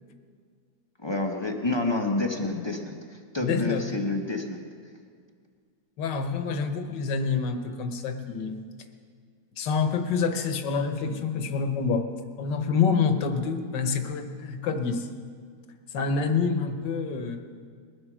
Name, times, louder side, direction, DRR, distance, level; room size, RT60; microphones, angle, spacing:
voice 1, 1.0-4.6, left 2 dB, 25° left, 3 dB, 0.6 m, -28 dB
voice 2, 3.4-3.8 6.0-8.6 9.6-12.1 12.4-15.1 15.9-17.4, left 5 dB, 70° left, 7 dB, 1.6 m, -27 dB
21.0 x 7.9 x 6.1 m, 2.1 s
omnidirectional pair, 2.0 m